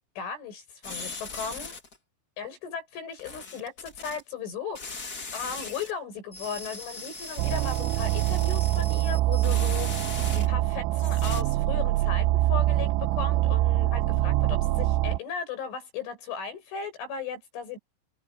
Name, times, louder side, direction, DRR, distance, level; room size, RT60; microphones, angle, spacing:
voice 1, 0.2-1.8 2.4-17.8, left 6 dB, 90° left, 10.5 m, -37 dB
sound 1, 0.8-2.0 3.2-4.2 4.7-5.9 6.3-10.7 11.0-11.4, left 3 dB, 30° left, 2.1 m, -39 dB
sound 2, 7.4-15.2, right 16 dB, 85° right, 3.0 m, -24 dB
omnidirectional pair, 5.4 m